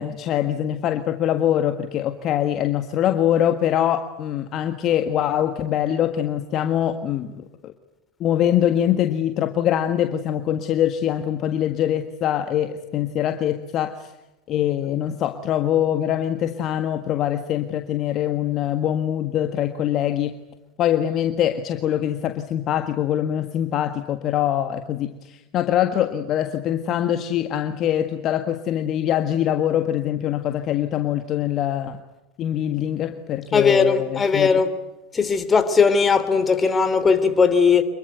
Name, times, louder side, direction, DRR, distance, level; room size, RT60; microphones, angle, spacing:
voice 1, 0.0-7.4 8.2-14.1 14.5-20.4 20.8-32.0 32.4-34.5, left 11 dB, 40° left, 8 dB, 1.6 m, -23 dB
voice 2, 33.5-34.7 35.2-37.8, left 5 dB, 20° left, 11 dB, 3.2 m, -18 dB
27.0 x 22.0 x 9.4 m, 0.95 s
hypercardioid pair, 85°, 0 cm